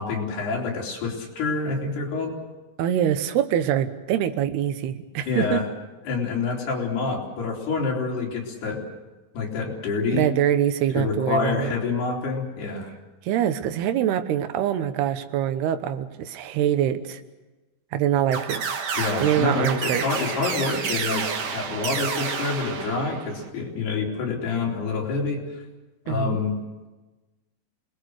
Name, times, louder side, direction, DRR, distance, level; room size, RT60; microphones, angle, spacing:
voice 1, 0.0-2.3 5.2-5.7 6.1-8.8 9.3-10.3 11.0-12.9 18.9-25.4 26.1-26.6, left 4 dB, 90° left, -1 dB, 5.8 m, -27 dB
voice 2, 2.8-5.6 10.1-11.7 13.2-17.2 17.9-18.6 19.2-20.1 26.1-26.4, right 10 dB, 85° right, 10 dB, 3.2 m, -24 dB
sound 1, 18.3-23.5, right 6 dB, 55° right, 1.9 m, -30 dB
27.5 x 20.5 x 6.5 m, 1.1 s
omnidirectional pair, 4.5 m